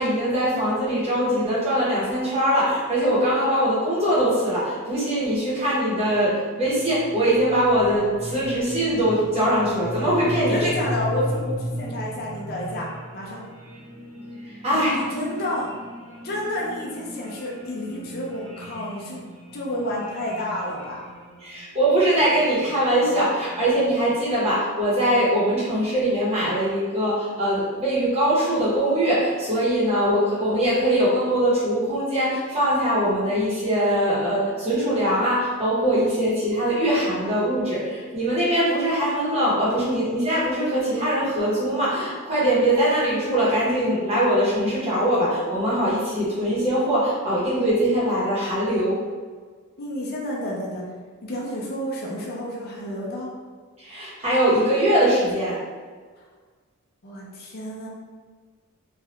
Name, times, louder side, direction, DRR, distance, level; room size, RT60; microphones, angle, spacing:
voice 1, 0.0-10.7 14.5-15.0 21.4-49.0 53.8-55.6, right 1 dB, 30° right, -8 dB, 1.0 m, -22 dB
sound 1, 6.1-24.4, equal, 85° right, 0.8 m, -37 dB
voice 2, 10.5-12.9 13.1-13.4 14.9-15.7 16.2-19.3 19.5-21.0 49.8-50.8 51.2-53.3 57.0-57.9, left 1 dB, 45° left, -4 dB, 0.6 m, -30 dB
3.0 x 2.4 x 2.9 m, 1.5 s
head